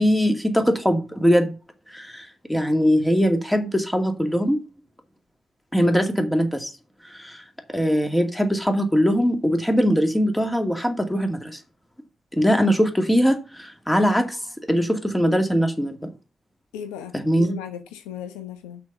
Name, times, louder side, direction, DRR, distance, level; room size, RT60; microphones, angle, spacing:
voice 1, 0.0-1.5 1.9-4.6 5.7-6.7 7.0-7.4 7.7-11.6 12.3-14.4 14.7-16.1 17.1-17.6, equal, 10° left, 2.3 m, -21 dB
voice 2, 16.7-18.8, left 9 dB, 85° left, 1.0 m, -36 dB
6.1 x 5.8 x 6.8 m
hypercardioid pair, 40°, 0 cm